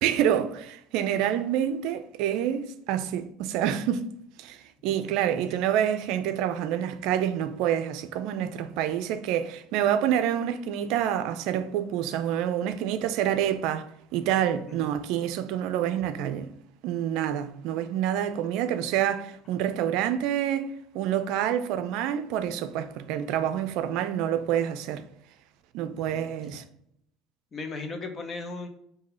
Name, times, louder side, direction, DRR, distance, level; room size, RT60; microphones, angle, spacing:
voice 1, 0.0-4.1 4.4-4.6 4.8-16.5 16.8-20.7 20.9-25.0 25.7-26.6, right 10 dB, 70° right, 0.4 m, -27 dB
voice 2, 27.5-28.7, left 3 dB, 35° left, 0.8 m, -36 dB
3.8 x 2.7 x 4.2 m
supercardioid pair, 95°, 0 cm